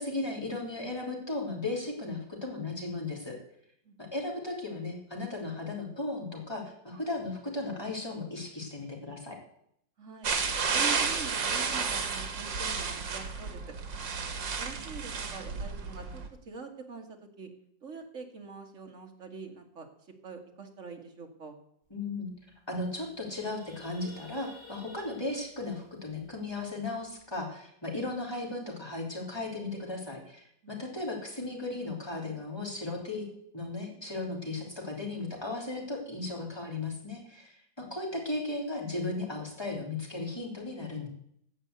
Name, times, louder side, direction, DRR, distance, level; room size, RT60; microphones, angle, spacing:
voice 1, 0.0-3.4 4.0-9.4 21.9-22.3 22.7-33.2 33.5-41.1, left 2 dB, 15° left, 0 dB, 3.4 m, -36 dB
voice 2, 10.0-10.3 10.7-13.6 14.6-17.1 17.4-17.5 17.8-19.9 20.2-21.6 30.6-30.8 37.8-38.2, right 4 dB, 40° right, 3 dB, 2.1 m, -44 dB
sound 1, 10.2-16.3, right 5 dB, 75° right, 2.2 m, -32 dB
sound 2, 21.9-22.0 22.3-22.5 22.9-27.2, left 1 dB, 30° left, 3.8 m, -53 dB
16.0 x 5.6 x 8.0 m, 0.70 s
omnidirectional pair, 2.0 m